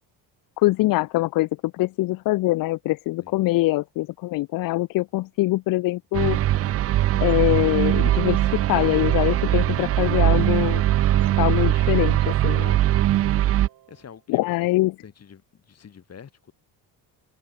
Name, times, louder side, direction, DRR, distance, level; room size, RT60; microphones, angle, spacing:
voice 1, 0.6-1.5 1.7-6.4 7.2-10.8 11.4-12.8 14.3-14.9, left 18 dB, 50° left, 0.5 m, -23 dB
sound 1, 6.1-13.7, right 13 dB, 35° right, 0.4 m, -21 dB
sound 2, 7.5-14.1, right 13 dB, 55° right, 1.7 m, -41 dB
voice 2, 13.9-14.5 15.0-16.5, left 7 dB, 35° left, 5.4 m, -46 dB
open air
cardioid pair, 120°, 43 cm